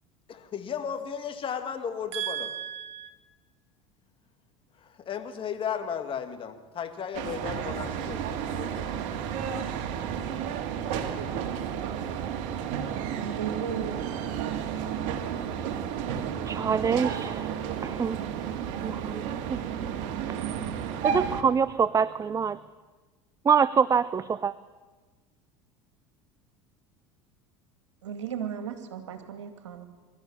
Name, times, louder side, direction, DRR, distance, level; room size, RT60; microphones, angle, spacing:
voice 1, 0.3-2.5 5.0-8.9, left 7 dB, 35° left, 8 dB, 2.2 m, -35 dB
voice 2, 2.1-3.1 13.2-14.0 28.0-29.8, right 9 dB, 75° right, 8 dB, 2.2 m, -35 dB
sound 1, 7.1-21.4, right 8 dB, 55° right, 2.0 m, -32 dB
voice 3, 16.5-17.5 17.8-18.2 18.8-19.9 21.0-22.6 23.5-24.5, right 6 dB, 20° right, 17 dB, 0.5 m, -25 dB
23.5 x 13.0 x 8.8 m, 1.3 s
hypercardioid pair, 75°, 15 cm